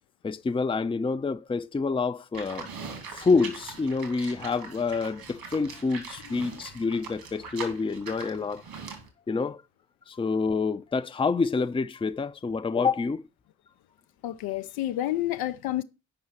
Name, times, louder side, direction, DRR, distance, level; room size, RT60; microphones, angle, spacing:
voice 1, 0.2-2.7 3.1-8.6 9.3-9.6 10.1-13.2, left 4 dB, 15° left, 0.6 m, -27 dB
Livestock farm animals working animals, 2.3-9.1, right 5 dB, 65° right, 2.8 m, -42 dB
voice 2, 14.2-15.8, left 14 dB, 70° left, 0.6 m, -29 dB
7.8 x 5.5 x 7.2 m
hypercardioid pair, 40°, 39 cm